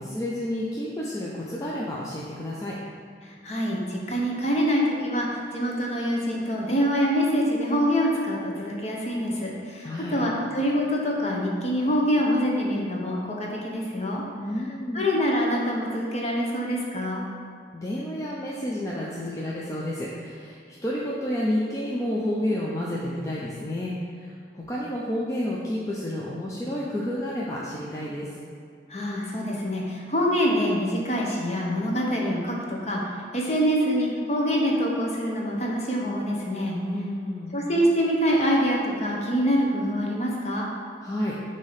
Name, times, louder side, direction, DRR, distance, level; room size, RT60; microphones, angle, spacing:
voice 1, 0.0-2.8 9.8-10.2 14.4-15.1 17.7-20.6 20.8-28.3 36.7-37.5 41.0-41.4, left 1 dB, 20° left, -5 dB, 0.4 m, -30 dB
voice 2, 3.4-14.2 14.9-17.2 28.9-33.0 33.3-36.8 37.5-40.7, equal, 35° left, -2 dB, 0.8 m, -25 dB
6.3 x 2.8 x 5.6 m, 2.3 s
head